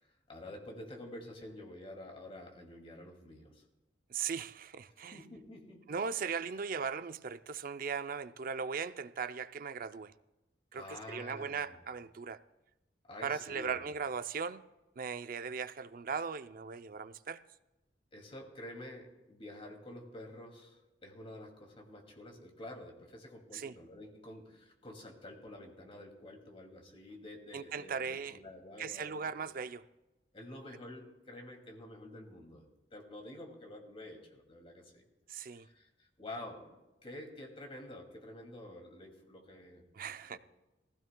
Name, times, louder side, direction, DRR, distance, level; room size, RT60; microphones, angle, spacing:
voice 1, 0.0-3.7 5.0-5.8 10.7-11.8 13.1-13.9 18.1-29.4 30.3-32.6 32.9-35.0 35.5-40.4, left 1 dB, 35° left, 2.5 m, -49 dB
voice 2, 4.1-5.2 5.9-10.1 10.7-12.4 13.2-14.6 15.0-17.4 23.5-23.7 27.5-28.4 28.8-29.9 35.3-35.7 40.0-40.4, right 6 dB, 50° right, 0.5 m, -38 dB
20.0 x 15.5 x 2.2 m
head